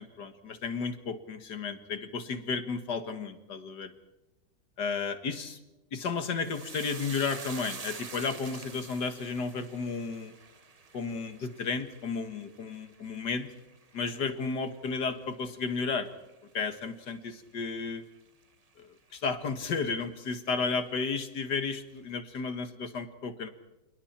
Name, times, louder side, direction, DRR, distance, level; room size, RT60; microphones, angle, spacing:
voice 1, 0.0-3.9 4.8-5.6 5.9-10.3 10.9-13.5 13.9-16.1 16.5-18.0 18.8-23.5, left 4 dB, 50° left, 9 dB, 2.1 m, -33 dB
sound 1, 6.4-15.0 15.3-16.0 16.3-16.5, right 4 dB, 45° right, 0.5 m, -47 dB
29.5 x 28.0 x 4.4 m, 0.99 s
omnidirectional pair, 2.4 m